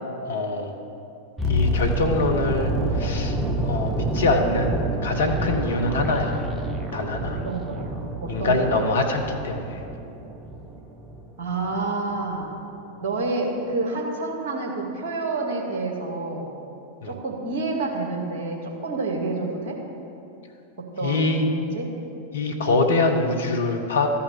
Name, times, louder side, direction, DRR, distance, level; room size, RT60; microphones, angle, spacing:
voice 1, 0.2-0.7 1.4-3.4 3.6-6.4 6.9-7.4 8.3-9.8 17.0-17.1 21.0-21.5 22.3-24.1, left 3 dB, 65° left, 3 dB, 1.3 m, -24 dB
sound 1, 1.4-11.4 11.6-11.9, right 1 dB, 10° right, 1.1 m, -28 dB
voice 2, 7.4-7.9 8.2-8.8 11.4-12.6 13.0-16.5 17.0-19.8 20.8-21.9, right 3 dB, 50° right, 0 dB, 2.1 m, -28 dB
13.5 x 5.7 x 7.9 m, 2.7 s
figure-of-eight pair, 90°, 0 cm